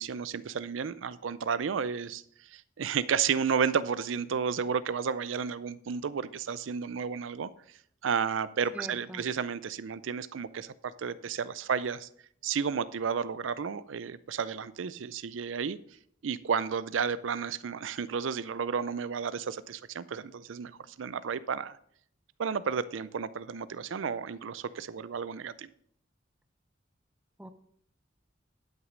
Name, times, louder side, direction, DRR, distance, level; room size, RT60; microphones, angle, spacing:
voice 1, 0.0-2.2 2.5-7.5 8.0-12.1 12.4-15.8 16.2-21.8 22.4-25.7, right 6 dB, 85° right, 16 dB, 0.5 m, -32 dB
voice 2, 8.7-9.2 27.4-27.5, equal, 5° right, 8 dB, 0.7 m, -43 dB
11.0 x 6.5 x 5.1 m, 0.65 s
head